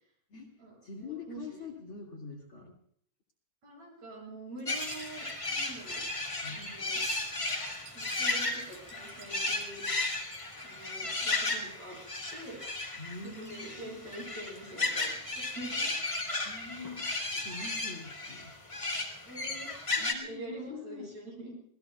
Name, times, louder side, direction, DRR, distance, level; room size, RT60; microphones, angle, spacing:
voice 1, 0.3-2.8 6.4-6.8 13.0-14.1 16.4-18.5 20.0-21.1, left 4 dB, 40° left, 0 dB, 2.6 m, -45 dB
voice 2, 1.1-1.4 3.6-6.0 6.4-7.0 7.9-9.8 10.6-12.0 12.3-12.6 13.2-15.9 19.2-21.5, right 2 dB, 50° right, -2 dB, 9.4 m, -45 dB
sound 1, 4.6-20.1, left 2 dB, 20° left, 0.8 m, -34 dB
Wind chime, 4.6-11.7 12.0-12.8 13.1-13.7 14.1-15.0 15.4-15.6, right 3 dB, 70° right, 4.8 m, -53 dB
27.0 x 19.0 x 2.4 m, 0.64 s
omnidirectional pair, 3.8 m